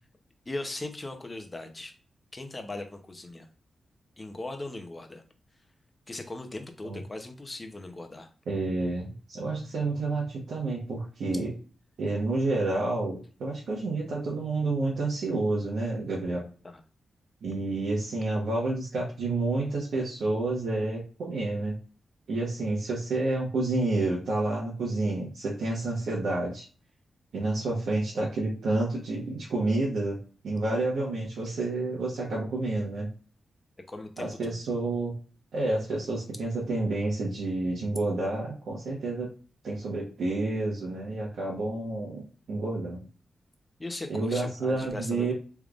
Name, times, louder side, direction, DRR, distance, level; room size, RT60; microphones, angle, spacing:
voice 1, 0.5-1.9 2.3-3.5 4.2-5.2 6.1-8.3 16.6-16.8 33.9-34.6 43.8-45.3, left 2 dB, 25° left, 6 dB, 0.8 m, -39 dB
voice 2, 8.5-11.5 12.0-16.4 17.4-21.7 22.3-26.6 27.3-30.2 30.4-33.1 34.2-35.1 35.5-39.3 39.6-43.0 44.1-45.3, right 2 dB, 80° right, -6 dB, 1.2 m, -29 dB
3.4 x 3.4 x 2.5 m, 0.38 s
cardioid pair, 85°, 0 cm